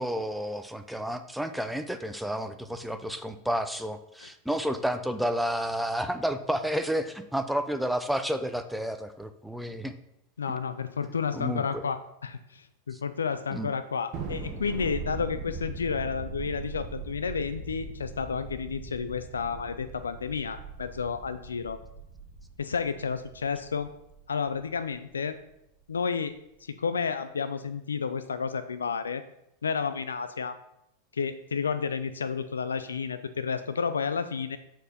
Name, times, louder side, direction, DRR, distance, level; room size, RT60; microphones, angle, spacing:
voice 1, 0.0-9.9 11.3-11.9 12.9-13.0 13.5-13.7, equal, ahead, 8 dB, 0.6 m, -31 dB
voice 2, 10.4-21.8 22.6-23.9 24.3-25.4 25.9-26.3 26.6-29.2 29.6-30.6 31.1-34.6, left 6 dB, 85° left, 11 dB, 0.4 m, -31 dB
Thunder, 14.1-24.8, right 4 dB, 40° right, 1.1 m, -40 dB
6.8 x 4.5 x 4.2 m, 0.82 s
hypercardioid pair, 95°, 0 cm